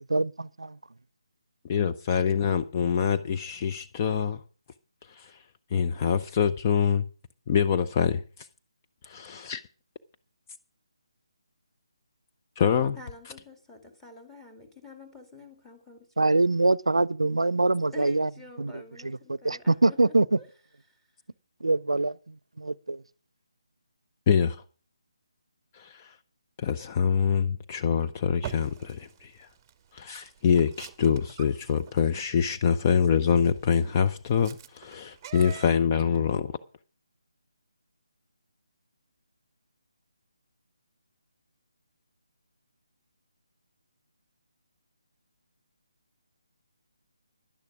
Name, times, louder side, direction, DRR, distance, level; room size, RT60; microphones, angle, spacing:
voice 1, 0.1-0.8 16.2-18.3 18.6-20.4 21.6-23.0, right 2 dB, 85° right, 0.5 m, -25 dB
voice 2, 1.6-4.4 5.1-5.4 5.7-7.0 7.5-8.2 9.0-9.6 12.6-13.0 24.3-24.5 25.7-26.2 26.6-29.5 29.9-36.5, left 7 dB, 30° left, 0.6 m, -25 dB
voice 3, 13.0-16.1 17.9-20.5 20.9-21.1, left 3 dB, 5° left, 2.1 m, -48 dB
sound 1, 28.4-35.7, right 9 dB, 20° right, 0.9 m, -45 dB
11.0 x 10.5 x 6.1 m
figure-of-eight pair, 150°, 3 cm